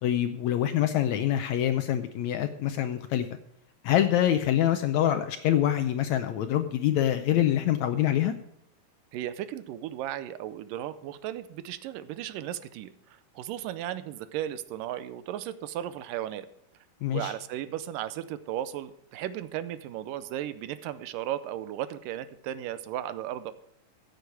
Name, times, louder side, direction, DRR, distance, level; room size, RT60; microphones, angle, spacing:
voice 1, 0.0-3.2 3.8-8.3 17.0-17.3, left 11 dB, 80° left, 8 dB, 1.7 m, -25 dB
voice 2, 9.1-16.5 17.1-23.5, right 12 dB, 90° right, 14 dB, 2.3 m, -35 dB
15.0 x 8.1 x 4.8 m, 0.79 s
omnidirectional pair, 3.9 m